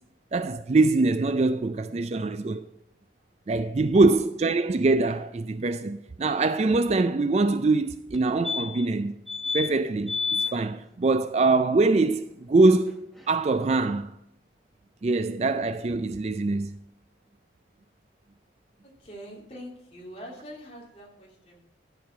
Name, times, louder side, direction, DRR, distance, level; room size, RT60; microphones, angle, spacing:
voice 1, 0.3-2.7 3.5-9.1 9.5-14.1 15.0-16.8, right 3 dB, 35° right, 0.4 m, -23 dB
sound 1, 8.1-8.2 8.4-8.9 9.3-9.7 10.1-10.5 12.9-13.0 13.2-13.3, left 5 dB, ahead, 0.9 m, -29 dB
voice 2, 19.0-21.6, equal, 30° left, 2.9 m, -44 dB
13.5 x 4.9 x 7.2 m
head